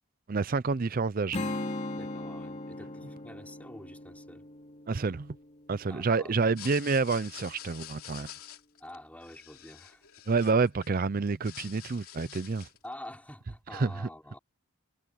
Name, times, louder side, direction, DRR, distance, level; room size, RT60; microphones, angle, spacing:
voice 1, 0.3-1.4 4.9-5.4 5.7-8.3 10.3-12.7 13.7-13.9, right 4 dB, 40° right, 0.5 m, -28 dB
Strum, 1.3-6.7, left 2 dB, 30° left, 3.5 m, -39 dB
voice 2, 1.9-4.5 5.9-6.8 8.8-10.1 12.8-14.4, left 1 dB, 5° left, 5.4 m, -47 dB
sound 1, 6.4-10.9 11.2-12.9, left 12 dB, 80° left, 2.8 m, -47 dB
head